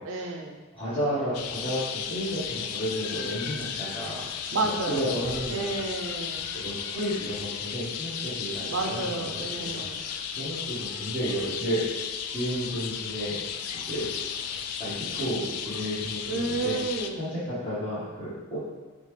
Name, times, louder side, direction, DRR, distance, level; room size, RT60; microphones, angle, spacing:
voice 1, 0.0-0.6 4.5-5.0 5.5-6.5 8.7-10.0 16.3-17.2, right 3 dB, 60° right, 3 dB, 0.5 m, -31 dB
voice 2, 0.7-4.5 4.9-5.8 6.5-9.3 9.5-13.4 13.9-14.1 14.5-16.8 17.2-18.6, equal, 20° left, -15 dB, 1.3 m, -32 dB
sound 1, 1.3-17.1, left 8 dB, 90° left, 0.3 m, -34 dB
4.1 x 3.5 x 3.2 m, 1.3 s
head